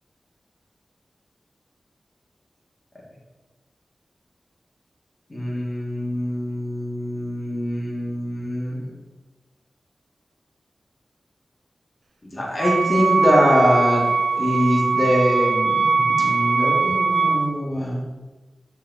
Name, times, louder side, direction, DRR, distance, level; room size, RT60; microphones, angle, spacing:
voice 1, 5.3-8.8 12.2-14.1 14.4-18.0, equal, 40° left, -5 dB, 2.3 m, -23 dB
Wind instrument woodwind instrument, 12.6-17.5, right 4 dB, 80° right, 0.5 m, -21 dB
7.1 x 4.7 x 4.1 m, 1.2 s
wide cardioid pair, 60°, 0 cm